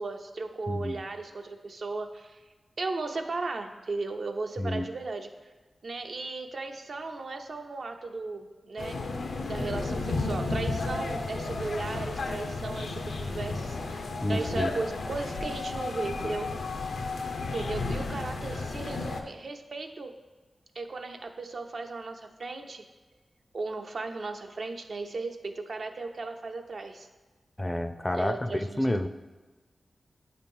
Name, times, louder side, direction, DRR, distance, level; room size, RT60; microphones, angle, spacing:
voice 1, 0.0-2.4 2.8-5.3 5.8-9.0 9.5-16.5 17.5-20.1 20.7-22.8 23.5-27.1 28.2-29.1, right 3 dB, 70° right, 4 dB, 0.5 m, -36 dB
voice 2, 0.7-1.0 4.6-4.8 14.2-14.7 27.6-29.1, left 1 dB, 15° left, 9 dB, 0.3 m, -29 dB
sound 1, 8.8-19.2, left 3 dB, 90° left, 0.5 m, -33 dB
8.3 x 2.9 x 5.3 m, 1.3 s
cardioid pair, 60°, 0 cm